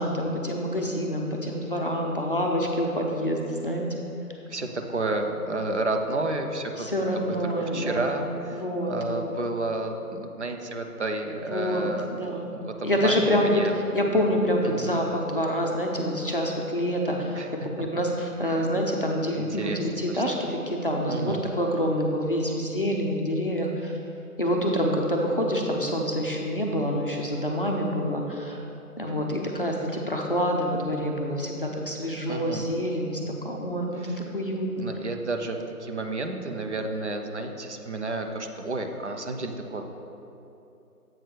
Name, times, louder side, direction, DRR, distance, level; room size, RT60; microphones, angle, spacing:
voice 1, 0.0-3.9 6.8-8.2 8.5-9.3 11.5-12.5 12.8-17.4 17.8-24.0 24.4-28.6 29.0-34.1 34.3-34.8, equal, 40° left, -1 dB, 0.5 m, -27 dB
voice 2, 4.5-8.6 8.9-12.2 12.6-13.7 14.6-15.0 17.3-17.5 18.5-18.6 19.3-19.8 20.1-20.2 21.1-21.4 32.3-32.7 34.0-34.2 34.8-39.8, right 2 dB, 50° right, 4 dB, 0.6 m, -31 dB
7.7 x 6.0 x 3.4 m, 2.9 s
figure-of-eight pair, 155°, 46 cm